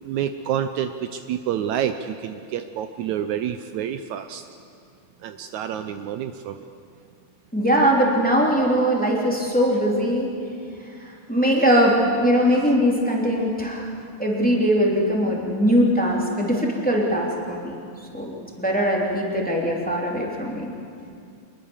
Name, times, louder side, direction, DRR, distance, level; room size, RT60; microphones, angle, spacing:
voice 1, 0.0-4.4 5.2-6.7, right 9 dB, 75° right, 9 dB, 2.0 m, -28 dB
voice 2, 7.5-10.3 11.0-13.9 14.2-17.8 18.1-20.7, equal, 5° left, -2 dB, 3.0 m, -21 dB
25.5 x 21.5 x 7.3 m, 2.4 s
omnidirectional pair, 3.5 m